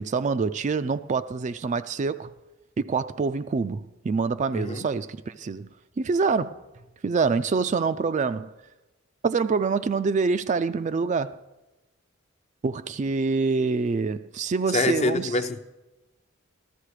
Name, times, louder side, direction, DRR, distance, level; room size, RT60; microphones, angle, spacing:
voice 1, 0.0-2.3 2.8-5.7 6.0-6.6 7.0-8.5 9.2-11.4 12.6-15.4, right 4 dB, 35° right, 0.3 m, -26 dB
voice 2, 4.5-4.8 14.7-15.6, left 3 dB, 35° left, 0.6 m, -25 dB
14.0 x 13.0 x 4.9 m
head